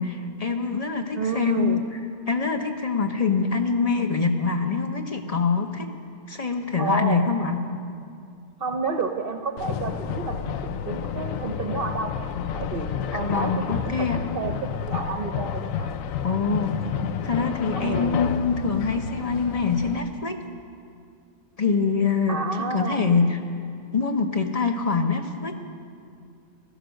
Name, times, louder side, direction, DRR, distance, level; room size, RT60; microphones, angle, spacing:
voice 1, 0.0-1.8 2.3-5.9 6.3-7.6 13.1-14.2 16.2-16.8 17.2-20.4 21.6-22.4 22.7-23.3 23.9-25.6, left 5 dB, 30° left, 5 dB, 0.9 m, -24 dB
voice 2, 1.1-1.8 6.8-7.3 8.6-12.2 12.5-14.1 14.3-15.9 17.7-18.3 22.3-23.1, right 4 dB, 50° right, 5 dB, 0.8 m, -30 dB
sound 1, 9.6-20.0, left 8 dB, 75° left, 1.1 m, -30 dB
16.0 x 13.0 x 6.4 m, 2.4 s
omnidirectional pair, 1.4 m